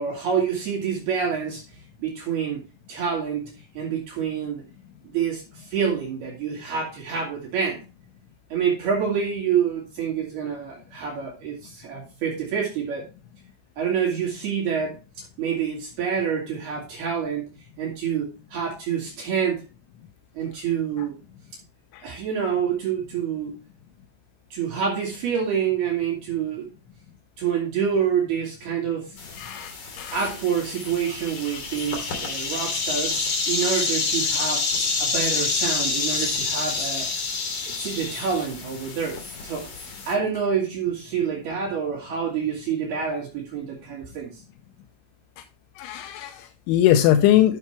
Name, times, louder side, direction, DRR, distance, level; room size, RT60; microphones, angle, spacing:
voice 1, 0.0-1.6 2.0-4.7 5.1-7.8 8.5-13.1 13.8-17.5 17.8-19.6 20.4-21.2 22.0-23.6 24.5-26.7 27.4-29.1 30.1-33.2 33.5-37.2 37.7-39.7 40.0-44.3, right 7 dB, 60° right, -3 dB, 3.9 m, -27 dB
sound 1, 29.2-40.1, left 4 dB, 45° left, 3.2 m, -28 dB
voice 2, 29.4-29.7 30.0-30.3 45.8-47.6, left 12 dB, 85° left, 6 dB, 3.1 m, -21 dB
12.0 x 6.9 x 3.2 m, 0.31 s
omnidirectional pair, 5.6 m